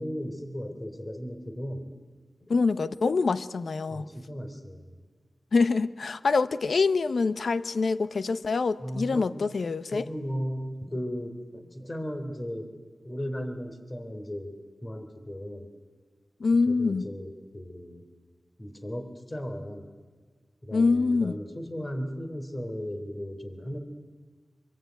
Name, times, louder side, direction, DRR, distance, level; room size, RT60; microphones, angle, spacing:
voice 1, 0.0-1.9 2.4-2.5 3.9-5.0 8.8-9.4 9.9-12.8 13.0-14.5 14.8-15.7 16.7-18.0 18.6-19.9 20.6-23.8, equal, 25° left, 3.6 m, -36 dB
voice 2, 2.5-4.1 5.5-10.1 16.4-17.1 20.7-21.3, left 4 dB, 75° left, 0.9 m, -25 dB
25.0 x 23.0 x 9.4 m
wide cardioid pair, 85°, 0 cm